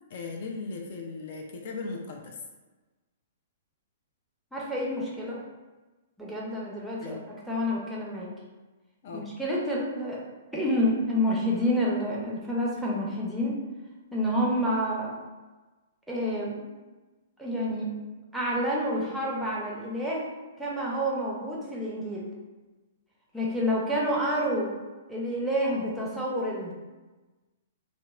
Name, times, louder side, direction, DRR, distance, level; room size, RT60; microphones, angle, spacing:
voice 1, 0.1-2.4 7.0-7.2 9.0-9.3, left 3 dB, 55° left, 1 dB, 0.3 m, -37 dB
voice 2, 4.5-5.4 6.2-7.2 7.5-8.3 9.1-10.2 10.5-13.6 14.1-15.1 16.1-16.7 17.4-17.9 18.3-20.3 20.6-22.3 23.3-24.7 25.1-26.7, equal, 5° right, -5 dB, 0.6 m, -28 dB
2.9 x 2.0 x 2.3 m, 1.2 s
figure-of-eight pair, 115°, 0 cm